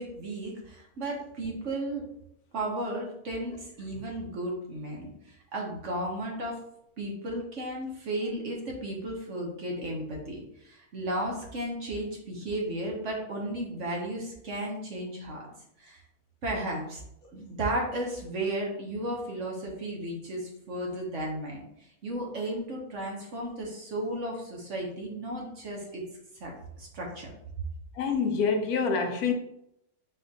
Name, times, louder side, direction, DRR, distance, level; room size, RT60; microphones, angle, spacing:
voice 1, 0.0-2.0 2.5-6.6 7.0-15.4 15.8-16.0 16.4-26.0 26.3-27.3, right 1 dB, 55° right, 1.2 m, -34 dB
voice 2, 27.9-29.3, left 5 dB, 75° left, 1.1 m, -26 dB
4.3 x 2.4 x 3.9 m
omnidirectional pair, 1.7 m